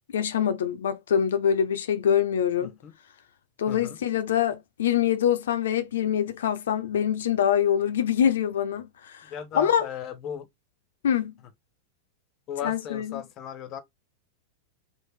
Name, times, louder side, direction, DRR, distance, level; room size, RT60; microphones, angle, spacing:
voice 1, 0.1-2.7 3.6-9.2 9.5-9.9 11.0-11.3 12.6-13.3, left 9 dB, 85° left, 0.5 m, -24 dB
voice 2, 9.3-10.5 12.5-13.8, left 8 dB, 40° left, 0.8 m, -35 dB
3.2 x 2.5 x 3.2 m
hypercardioid pair, 120°, 0 cm